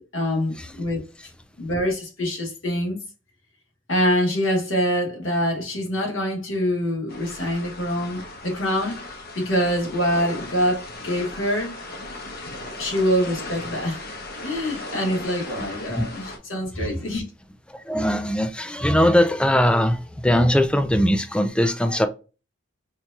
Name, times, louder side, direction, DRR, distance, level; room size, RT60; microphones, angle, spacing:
voice 1, 0.1-1.0 1.6-3.0 3.9-9.0 9.3-11.8 12.8-14.1 14.4-17.2, equal, 85° left, 1.6 m, -25 dB
sound 1, 7.1-16.4, left 2 dB, 50° left, 0.9 m, -37 dB
voice 2, 16.8-17.2 17.7-22.1, equal, 5° left, 0.3 m, -21 dB
4.6 x 2.7 x 2.3 m
head